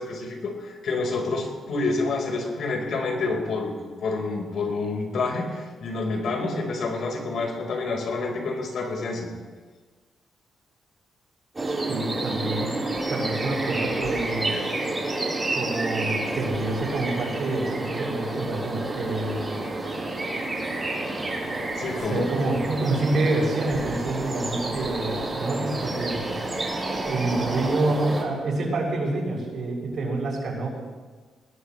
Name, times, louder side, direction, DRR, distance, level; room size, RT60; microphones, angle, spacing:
voice 1, 0.0-3.8 4.0-9.3 21.8-22.3, left 3 dB, 65° left, 1 dB, 4.5 m, -28 dB
sound 1, 11.5-28.2, right 2 dB, 25° right, 4.2 m, -29 dB
voice 2, 11.7-12.7 13.1-14.5 15.5-19.6 22.1-26.4 27.1-30.7, right 2 dB, 60° right, -3 dB, 7.1 m, -27 dB
21.5 x 20.0 x 3.3 m, 1.4 s
cardioid pair, 100°, 0 cm